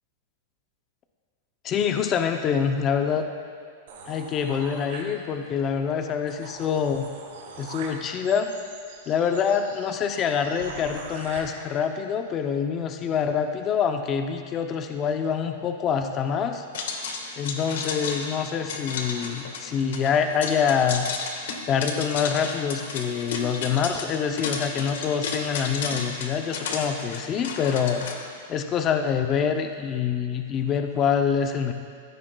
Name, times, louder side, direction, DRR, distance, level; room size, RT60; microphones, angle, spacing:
voice 1, 1.6-3.3 4.0-7.1 7.6-8.5 9.1-16.6 17.4-21.1 21.7-28.1 28.5-31.7, left 7 dB, 20° left, 6 dB, 0.5 m, -25 dB
sound 1, 3.9-5.6 6.0-6.1 6.3-11.4, right 4 dB, 80° right, 2.5 m, -43 dB
sound 2, 16.7-28.1, left 4 dB, 70° left, 1.3 m, -33 dB
15.0 x 12.5 x 2.2 m, 2.1 s
supercardioid pair, 170°, 0 cm